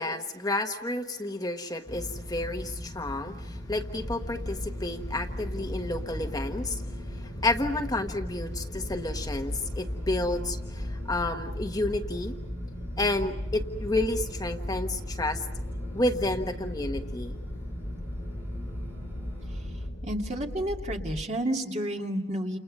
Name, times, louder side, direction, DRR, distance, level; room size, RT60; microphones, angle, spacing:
voice 1, 0.0-6.8 7.1-12.3 13.0-15.4 15.9-17.3, left 2 dB, 20° left, 4 dB, 1.3 m, -30 dB
sound 1, 1.9-19.9, left 1 dB, 15° right, 4.5 m, -38 dB
sound 2, 3.9-21.2, equal, 85° left, 1.7 m, -39 dB
voice 2, 20.0-22.6, right 1 dB, 40° right, 2 dB, 2.5 m, -30 dB
30.0 x 29.0 x 5.5 m, 0.87 s
head